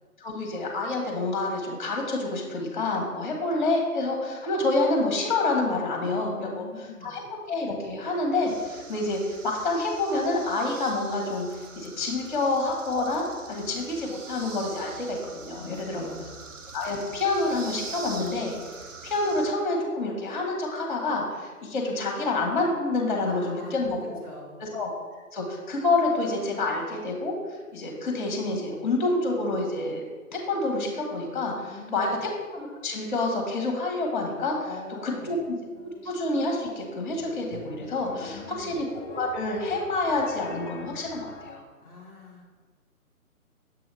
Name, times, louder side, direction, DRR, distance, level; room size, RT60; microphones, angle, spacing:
voice 1, 0.2-6.6 7.0-7.2 7.5-11.5 11.7-16.1 16.7-18.6 19.0-24.2 24.6-24.9 25.3-27.3 27.7-30.0 30.3-31.5 31.9-34.5 35.0-35.4 36.0-41.6, left 2 dB, 35° left, 0 dB, 1.3 m, -28 dB
voice 2, 6.3-7.1 15.5-16.4 23.2-24.6 31.6-32.2 34.6-35.4 38.1-38.8 41.8-42.5, left 3 dB, ahead, -18 dB, 0.6 m, -44 dB
sound 1, 8.5-19.5, right 4 dB, 60° right, 0.7 m, -44 dB
sound 2, 35.8-41.6, left 4 dB, 60° left, 0.8 m, -45 dB
7.5 x 2.8 x 5.4 m, 1.4 s
figure-of-eight pair, 140°, 44 cm